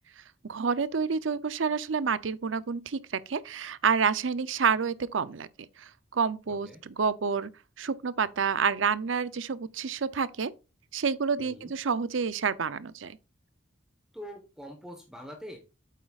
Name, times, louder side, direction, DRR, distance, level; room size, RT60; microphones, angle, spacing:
voice 1, 0.4-5.5 5.8-7.5 7.8-10.5 10.9-13.2, right 6 dB, 75° right, 0.6 m, -28 dB
voice 2, 6.5-6.8 11.4-11.7 14.1-15.6, equal, 5° right, 1.2 m, -44 dB
8.3 x 8.0 x 2.4 m
head